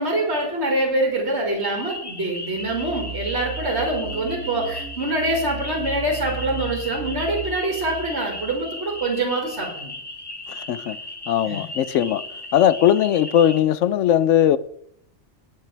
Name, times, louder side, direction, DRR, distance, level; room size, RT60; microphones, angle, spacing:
voice 1, 0.0-9.9 11.5-11.6, right 2 dB, 65° right, 2.3 m, -25 dB
sound 1, 1.6-13.6, left 1 dB, 20° left, 1.1 m, -36 dB
sound 2, 2.5-9.1, right 4 dB, 80° right, 1.3 m, -36 dB
voice 2, 10.5-11.0 11.3-12.2 12.5-14.6, left 10 dB, 85° left, 0.9 m, -19 dB
19.0 x 6.7 x 3.3 m
omnidirectional pair, 1.2 m